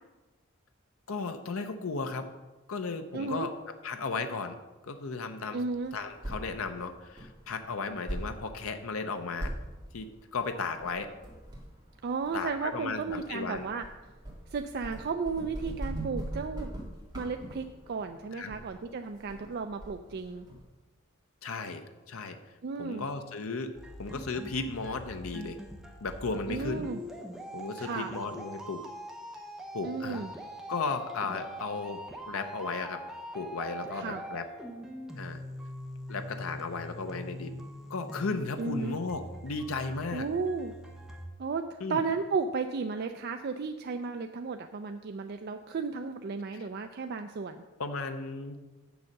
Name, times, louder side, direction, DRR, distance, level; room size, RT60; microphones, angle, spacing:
voice 1, 1.1-2.3 2.7-3.5 3.8-4.6 4.8-5.6 5.9-9.5 9.9-11.1 12.3-13.7 18.3-18.5 21.4-22.4 22.8-23.7 24.0-25.6 26.0-26.9 27.5-28.8 29.7-30.2 30.7-32.0 32.3-33.0 33.3-34.5 35.2-35.4 36.1-37.6 37.9-40.3 41.8-42.0 46.6-46.7 47.8-48.6, left 4 dB, 80° left, 7 dB, 0.7 m, -35 dB
voice 2, 3.1-3.5 5.5-5.9 12.0-13.8 14.5-16.7 17.1-20.5 22.6-23.1 26.5-27.0 27.8-28.1 29.8-30.3 33.9-34.2 38.6-39.0 40.1-40.7 41.4-47.6, right 4 dB, 50° right, 6 dB, 0.4 m, -34 dB
sound 1, 5.7-20.6, right 1 dB, 20° right, 2.1 m, -42 dB
sound 2, 23.7-41.3, equal, ahead, 0.9 m, -43 dB
7.3 x 7.0 x 6.5 m, 1.2 s
head